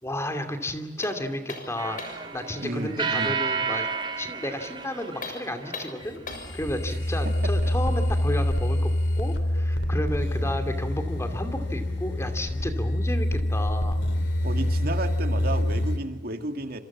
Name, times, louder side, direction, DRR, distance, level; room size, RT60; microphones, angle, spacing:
voice 1, 0.0-3.9 4.2-6.2 6.5-14.0, left 1 dB, 15° left, 7 dB, 2.6 m, -32 dB
sound 1, 1.0-2.3 5.1-6.6, left 3 dB, 45° left, 6.8 m, -39 dB
sound 2, 1.8-6.0, right 5 dB, 25° right, 3.6 m, -31 dB
voice 2, 2.6-3.4 6.9-7.0 7.2-7.7 9.8-9.9 14.4-16.8, right 1 dB, 55° right, 6 dB, 2.2 m, -33 dB
sound 3, 6.0-16.0, left 1 dB, 85° left, 3.4 m, -26 dB
27.5 x 27.0 x 7.3 m, 1.2 s
head